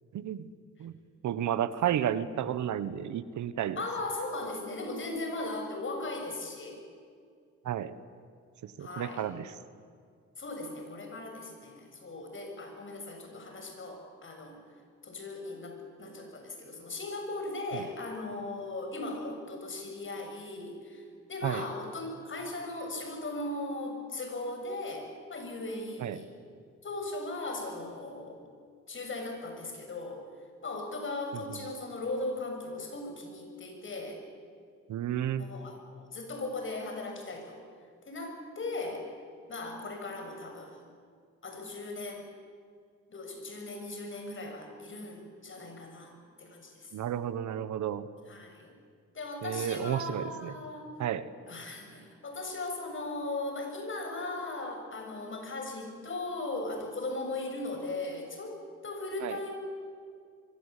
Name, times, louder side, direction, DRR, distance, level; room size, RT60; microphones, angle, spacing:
voice 1, 0.1-0.5 0.8-0.9 1.2-3.8 7.6-8.0 8.8-9.5 17.7-17.8 21.4-21.6 26.0-26.2 31.3-31.6 34.9-35.4 46.9-48.0 49.4-50.5 51.0-51.3 59.2-59.4, right 10 dB, 70° right, 13 dB, 1.4 m, -32 dB
voice 2, 3.8-6.8 8.8-9.3 10.4-14.6 15.0-26.3 26.8-28.5 28.9-30.2 30.6-34.2 35.4-37.6 38.1-39.1 39.5-40.8 41.4-42.3 43.1-46.9 48.3-48.7 49.1-50.9 51.5-59.6, left 2 dB, 40° left, 4 dB, 7.3 m, -38 dB
25.0 x 24.0 x 8.5 m, 2.2 s
cardioid pair, 90°, 30 cm